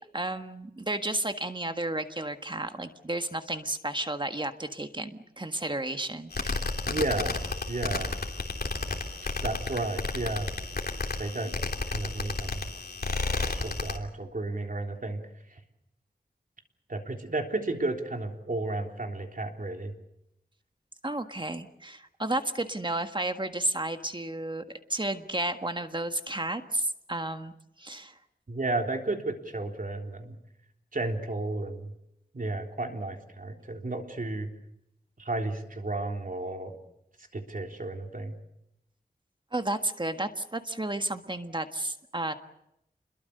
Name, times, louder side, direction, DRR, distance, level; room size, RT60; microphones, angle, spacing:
voice 1, 0.1-6.7 21.0-24.6 24.9-28.2 39.5-42.4, right 1 dB, 30° right, 7 dB, 1.6 m, -32 dB
sound 1, 6.3-14.0, left 3 dB, 70° left, 3.1 m, -32 dB
voice 2, 6.9-7.4 7.7-8.1 9.4-10.5 11.2-11.6 11.9-12.6 13.5-15.2 15.5-15.6 16.9-19.9 28.5-30.4 30.9-31.9 32.3-34.5 35.2-36.8 37.3-38.4, right 2 dB, 55° right, 3 dB, 3.5 m, -33 dB
28.0 x 22.0 x 6.7 m, 0.82 s
wide cardioid pair, 80°, 17 cm